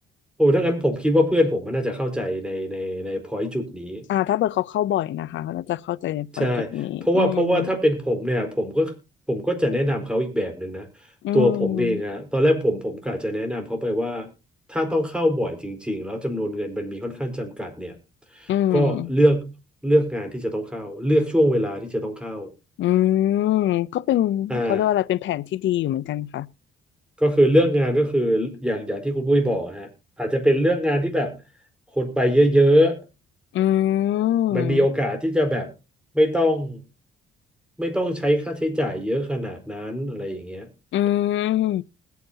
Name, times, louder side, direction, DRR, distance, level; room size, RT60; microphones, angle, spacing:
voice 1, 0.4-4.0 6.3-6.7 7.0-8.9 9.3-10.8 11.3-14.3 14.7-17.9 18.4-19.5 19.8-22.5 24.5-24.8 27.2-29.9 30.2-31.3 31.9-33.0 34.5-35.7 36.1-36.8 37.8-40.7, equal, 5° right, 4.4 m, -22 dB
voice 2, 4.1-7.7 11.2-12.0 18.5-19.1 22.8-26.5 33.5-34.9 40.9-41.8, left 12 dB, 70° left, 0.6 m, -23 dB
20.5 x 9.4 x 2.8 m
cardioid pair, 90°, 20 cm